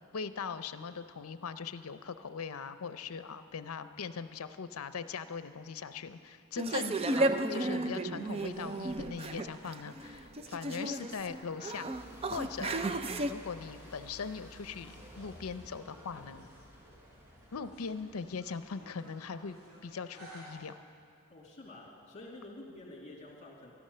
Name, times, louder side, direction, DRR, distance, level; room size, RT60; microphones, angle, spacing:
voice 1, 0.1-11.9 12.3-12.7 13.3-16.5 17.5-19.6 19.8-20.7, left 5 dB, 75° left, 11 dB, 0.6 m, -40 dB
sound 1, 6.6-13.3, right 2 dB, 25° right, 0.5 m, -33 dB
sound 2, 8.3-20.5, equal, 85° right, 4.8 m, -56 dB
sound 3, 11.9-18.9, equal, 10° right, 1.2 m, -55 dB
voice 2, 21.3-23.7, left 2 dB, 35° left, -2 dB, 2.6 m, -49 dB
14.5 x 12.0 x 6.7 m, 2.3 s
head